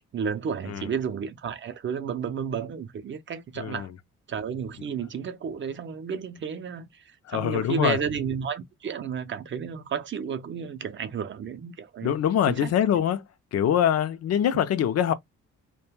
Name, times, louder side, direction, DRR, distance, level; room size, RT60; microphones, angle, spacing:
voice 1, 0.1-3.9 4.3-12.1 12.5-12.7, right 7 dB, 40° right, 0.5 m, -32 dB
voice 2, 3.6-3.9 7.3-8.0 12.0-13.2 13.5-15.1, left 9 dB, 55° left, 0.5 m, -24 dB
2.2 x 2.1 x 3.1 m
cardioid pair, 90°, 30 cm